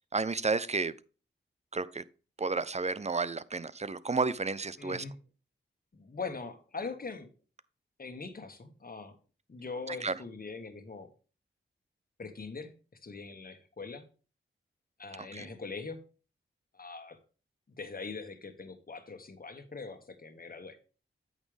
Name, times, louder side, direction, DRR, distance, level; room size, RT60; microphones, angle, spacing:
voice 1, 0.1-0.9 1.7-2.0 2.4-5.0 9.9-10.1 15.3-15.5, right 4 dB, 30° right, 0.7 m, -31 dB
voice 2, 4.8-5.1 5.9-7.3 8.0-9.1 9.5-11.1 12.2-12.7 13.0-14.0 15.0-16.0 16.7-17.2 17.7-20.8, left 4 dB, 45° left, 1.6 m, -42 dB
9.0 x 6.5 x 3.4 m
cardioid pair, 50°, 21 cm